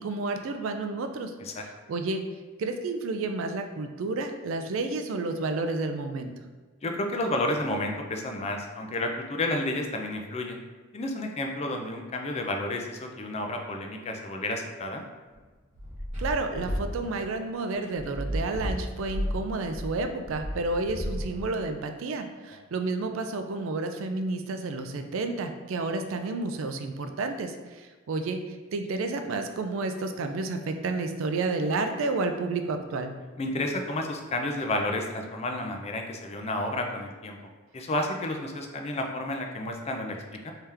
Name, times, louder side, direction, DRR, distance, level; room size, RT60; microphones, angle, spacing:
voice 1, 0.0-1.3 1.6-2.2 2.6-6.3 16.2-33.1, right 3 dB, 70° right, 6 dB, 0.4 m, -31 dB
voice 2, 6.8-10.6 10.9-15.0 18.2-18.3 33.4-37.4 37.7-40.5, left 1 dB, 30° left, 3 dB, 0.4 m, -31 dB
sound 1, 15.3-21.8, equal, 35° right, 1.2 m, -33 dB
3.5 x 2.8 x 3.3 m, 1.3 s
head